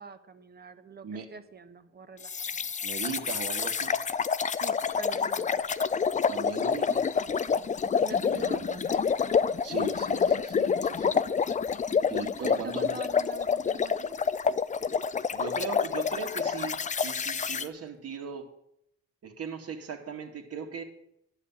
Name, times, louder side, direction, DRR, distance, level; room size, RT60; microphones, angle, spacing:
voice 1, 0.0-2.7 4.6-5.6 7.2-7.4 7.8-9.1 12.2-14.2, right 4 dB, 30° right, 10 dB, 1.0 m, -44 dB
voice 2, 1.0-1.3 2.8-3.9 6.3-7.1 8.2-8.8 9.6-11.3 12.1-13.0 15.3-18.5 19.2-20.8, right 6 dB, 55° right, 4 dB, 2.0 m, -38 dB
sound 1, 2.2-17.7, left 6 dB, 25° left, 0.4 m, -28 dB
11.0 x 5.7 x 8.7 m, 0.77 s
cardioid pair, 90°, 30 cm